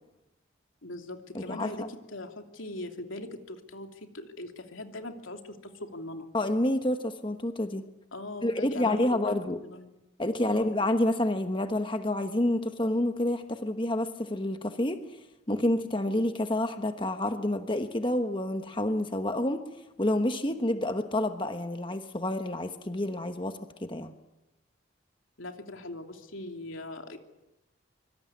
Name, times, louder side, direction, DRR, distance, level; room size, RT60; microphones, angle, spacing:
voice 1, 0.8-6.3 8.1-9.4 9.6-9.9 10.4-10.6 25.4-27.2, left 1 dB, 85° left, 5 dB, 3.1 m, -40 dB
voice 2, 1.3-1.9 6.3-7.8 8.4-9.6 10.2-15.0 15.5-19.6 20.0-24.1, left 1 dB, 25° left, 7 dB, 1.2 m, -28 dB
25.5 x 24.0 x 9.6 m, 0.96 s
head